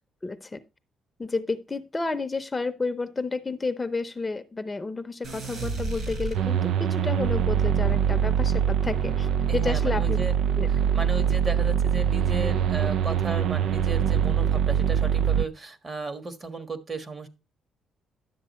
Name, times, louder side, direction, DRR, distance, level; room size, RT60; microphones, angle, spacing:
voice 1, 0.2-0.6 1.2-10.2 10.6-10.7, left 3 dB, 20° left, 10 dB, 0.7 m, -31 dB
sound 1, 5.2-7.0, right 3 dB, 55° right, 4.2 m, -33 dB
sound 2, 6.3-15.5, right 9 dB, 75° right, 0.4 m, -23 dB
voice 2, 9.5-10.4 10.7-17.3, right 2 dB, 35° right, 9 dB, 1.4 m, -35 dB
11.0 x 7.4 x 3.1 m, 0.28 s
cardioid pair, 90°, 0 cm